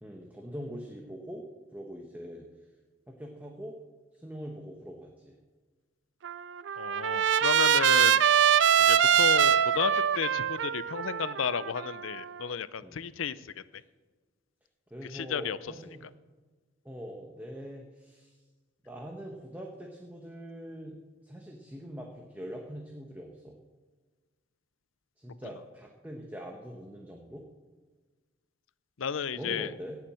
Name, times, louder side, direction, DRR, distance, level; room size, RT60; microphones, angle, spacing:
voice 1, 0.0-1.5 1.7-2.5 3.1-3.7 4.1-5.4 12.8-13.0 13.7-13.8 14.9-16.1 16.8-18.4 18.8-23.5 25.2-27.4 29.3-30.0, equal, 10° right, 1 dB, 1.1 m, -43 dB
Trumpet, 6.2-12.4, right 9 dB, 65° right, 0.4 m, -24 dB
voice 2, 6.8-8.2 8.8-13.3 15.1-15.6 29.0-29.7, left 6 dB, 85° left, 16 dB, 0.6 m, -33 dB
18.0 x 7.2 x 6.3 m, 1.3 s
head